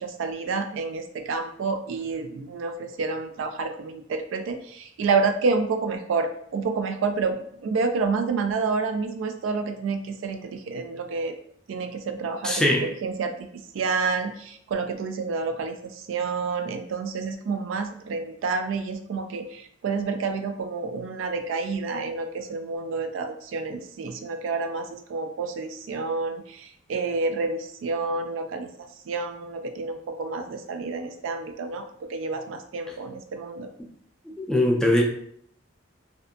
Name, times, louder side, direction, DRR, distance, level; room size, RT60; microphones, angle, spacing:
voice 1, 0.0-11.3 11.7-33.7, right 4 dB, 80° right, 8 dB, 0.3 m, -29 dB
voice 2, 12.4-12.9 34.3-35.0, left 1 dB, 5° left, 0 dB, 0.3 m, -21 dB
2.6 x 2.1 x 2.4 m, 0.66 s
head